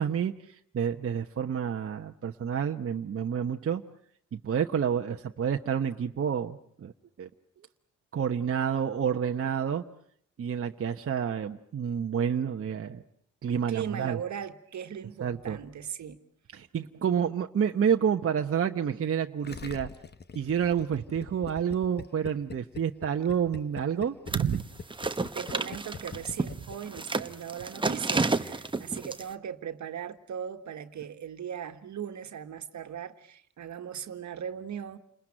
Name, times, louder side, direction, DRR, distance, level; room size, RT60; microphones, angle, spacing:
voice 1, 0.0-3.8 4.3-6.9 7.2-7.3 8.1-9.8 10.4-13.0 13.4-14.2 15.2-15.6 16.5-19.9 20.3-24.6, right 8 dB, 45° right, 1.0 m, -29 dB
voice 2, 13.7-16.2 25.3-35.0, right 8 dB, 65° right, 1.6 m, -38 dB
Gurgling, 19.4-27.0 27.3-27.4, left 5 dB, 35° left, 1.1 m, -43 dB
sound 1, 24.3-24.6 24.9-29.2, right 3 dB, 15° right, 1.1 m, -30 dB
29.0 x 20.5 x 8.9 m
cardioid pair, 85°, 31 cm